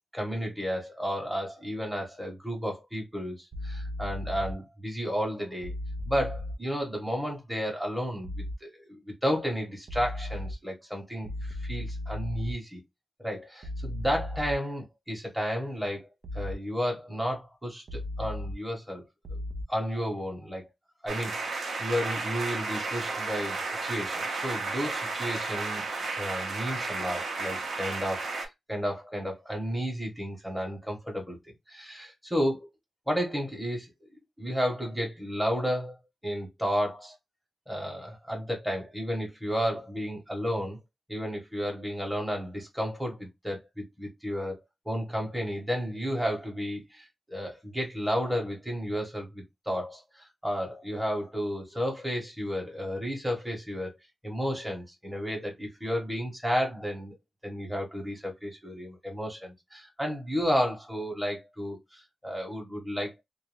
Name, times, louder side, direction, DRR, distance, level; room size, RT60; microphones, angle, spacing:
voice 1, 0.1-5.7 6.0-8.3 8.6-12.8 13.2-16.0 16.3-19.0 19.7-20.7 21.0-25.8 26.2-31.4 31.7-32.7 33.1-33.9 34.4-35.9 36.2-37.1 37.7-40.8 41.1-44.6 44.8-53.9 54.2-57.1 57.4-63.2, equal, 5° right, 1.2 m, -32 dB
sound 1, 3.5-4.5 5.6-6.5 8.2-8.5 9.9-10.5 11.2-12.5 13.6-14.5 16.2-16.5 17.9-18.5 19.2-19.6, left 1 dB, 55° right, 0.6 m, -35 dB
sound 2, 21.1-28.5, right 3 dB, 75° right, 0.9 m, -33 dB
2.6 x 2.3 x 3.1 m
wide cardioid pair, 100°, 0 cm